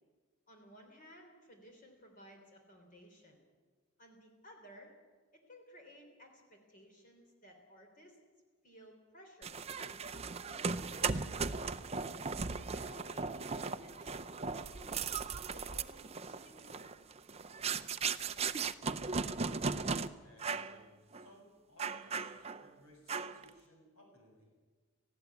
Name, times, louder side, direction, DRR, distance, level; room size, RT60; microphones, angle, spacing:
voice 1, 0.5-3.4 4.0-4.9 5.3-8.2 8.6-10.1 10.4-11.7 12.5-16.9, equal, 40° left, 2 dB, 3.3 m, -58 dB
sound 1, 9.4-20.1 20.4-20.8 21.1-21.3 21.8-22.7 23.1-23.5, right 5 dB, 30° right, 0.6 m, -37 dB
voice 2, 20.2-24.5, left 1 dB, 90° left, 1 dB, 7.3 m, -62 dB
19.0 x 15.0 x 9.5 m, 1.5 s
head